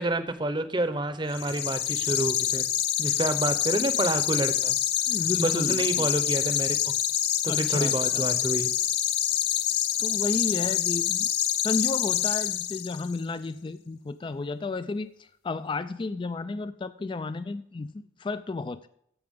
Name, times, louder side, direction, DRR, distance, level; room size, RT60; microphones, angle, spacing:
voice 1, 0.0-2.6 3.0-4.8 5.4-6.9 7.4-8.7, right 2 dB, 25° right, 11 dB, 0.8 m, -28 dB
sound 1, 1.3-13.1, left 11 dB, 55° left, 0.7 m, -26 dB
voice 2, 5.1-6.1 7.5-8.2 10.0-11.3 11.6-18.8, left 3 dB, 25° left, 13 dB, 0.3 m, -32 dB
15.0 x 5.9 x 3.6 m, 0.71 s
head